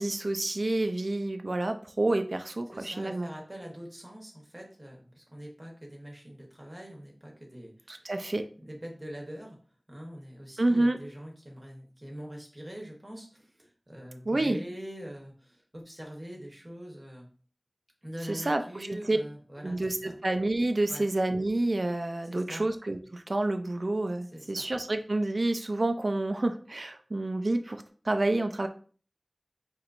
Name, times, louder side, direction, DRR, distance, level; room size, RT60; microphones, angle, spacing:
voice 1, 0.0-3.3 7.9-8.4 10.6-11.0 14.3-14.6 18.3-19.2 19.6-28.7, right 2 dB, 65° right, 7 dB, 0.4 m, -29 dB
voice 2, 2.7-8.1 8.6-9.6 9.9-17.3 18.0-20.2 20.9-21.1 22.3-22.7 24.3-24.6, equal, 35° right, -1 dB, 1.1 m, -43 dB
4.4 x 3.0 x 2.5 m, 0.40 s
wide cardioid pair, 55°, 0 cm